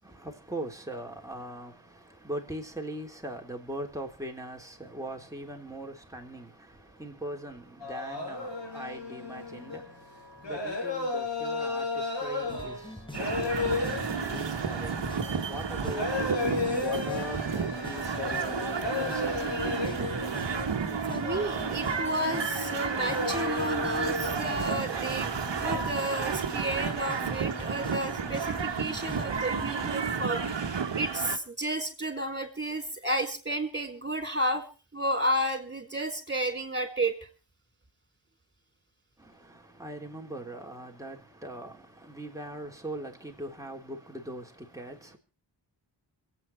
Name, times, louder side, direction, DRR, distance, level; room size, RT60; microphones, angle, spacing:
voice 1, 0.0-20.0 39.2-45.2, right 1 dB, 5° right, 3.5 m, -41 dB
sound 1, 7.8-25.8, left 3 dB, 75° left, 6.2 m, -35 dB
sound 2, 12.5-29.9, left 1 dB, 10° left, 1.7 m, -44 dB
sound 3, 13.1-31.4, right 6 dB, 70° right, 1.6 m, -32 dB
voice 2, 21.1-25.3 25.6-34.6 34.9-37.1, right 1 dB, 25° right, 4.6 m, -32 dB
27.0 x 9.1 x 4.6 m
wide cardioid pair, 75°, 44 cm